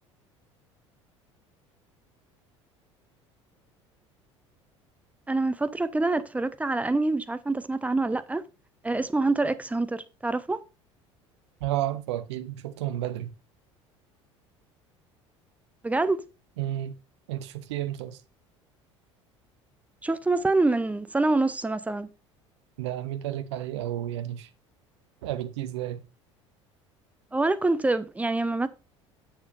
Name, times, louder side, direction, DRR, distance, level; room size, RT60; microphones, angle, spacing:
voice 1, 5.3-8.4 8.8-10.6 15.8-16.2 20.0-22.1 27.3-28.7, right 2 dB, 10° right, 0.6 m, -26 dB
voice 2, 11.6-13.3 16.6-16.9 17.3-18.2 22.8-24.5 25.2-26.0, right 13 dB, 65° right, 0.8 m, -31 dB
10.0 x 7.2 x 2.6 m
figure-of-eight pair, 65°, 16 cm